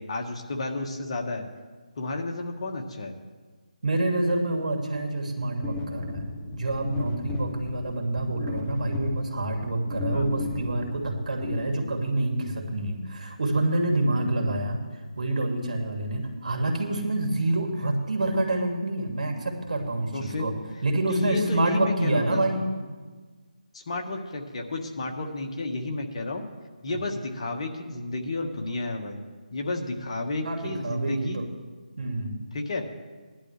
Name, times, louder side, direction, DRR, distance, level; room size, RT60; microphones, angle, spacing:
voice 1, 0.0-1.4 1.9-3.1 10.1-10.3 20.1-20.5 21.1-22.5 23.7-26.4 26.8-29.2 29.5-31.4 32.5-32.8, left 2 dB, 45° left, 2 dB, 1.6 m, -31 dB
voice 2, 3.8-6.2 6.5-14.8 15.2-20.5 20.8-22.7 26.9-27.0 30.4-31.5 32.0-32.4, right 2 dB, 65° right, 2 dB, 2.6 m, -27 dB
sound 1, 5.6-12.2, left 2 dB, 10° left, 1.0 m, -35 dB
19.0 x 11.0 x 3.3 m, 1.4 s
figure-of-eight pair, 160°, 4 cm